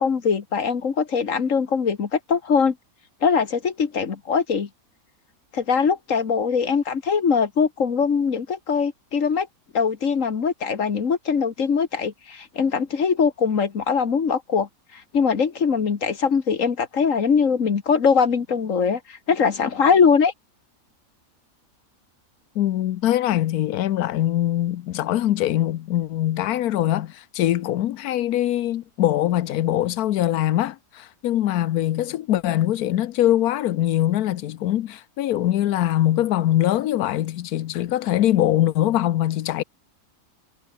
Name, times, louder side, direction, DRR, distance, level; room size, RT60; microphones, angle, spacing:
voice 1, 0.0-2.8 3.2-4.7 5.5-9.5 9.7-20.3, left 6 dB, 60° left, 1.9 m, -22 dB
voice 2, 22.5-39.6, left 13 dB, 80° left, 1.2 m, -22 dB
omnidirectional pair, 1.6 m